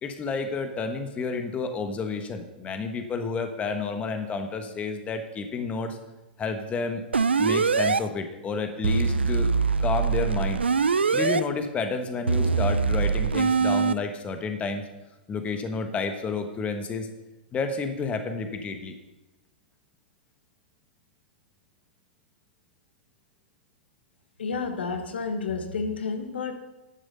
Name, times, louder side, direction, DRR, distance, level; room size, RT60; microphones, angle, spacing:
voice 1, 0.0-6.0 6.4-7.0 7.4-9.5 9.8-10.6 11.1-14.9 15.3-17.1 17.5-18.9, left 4 dB, 20° left, 7 dB, 1.3 m, -30 dB
sound 1, 7.1-8.0 8.8-11.4 12.3-13.9, right 5 dB, 85° right, 0.5 m, -23 dB
voice 2, 24.4-26.6, left 4 dB, 75° left, 7 dB, 1.2 m, -30 dB
11.0 x 6.9 x 5.6 m, 1.0 s
hypercardioid pair, 105°, 6 cm